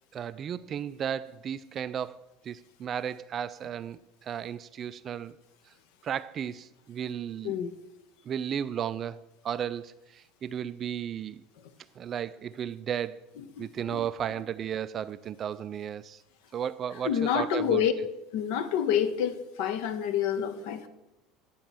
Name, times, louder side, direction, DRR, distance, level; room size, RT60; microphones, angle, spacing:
voice 1, 0.1-2.2 2.4-5.4 6.0-7.6 8.3-9.9 10.4-11.4 12.0-13.2 13.6-16.2 16.5-17.9, right 9 dB, 35° right, 0.3 m, -34 dB
voice 2, 7.4-7.7 13.6-13.7 13.9-14.0 17.0-17.9 18.3-20.9, left 9 dB, 55° left, 0.7 m, -28 dB
9.1 x 4.3 x 7.1 m
figure-of-eight pair, 70°, 0 cm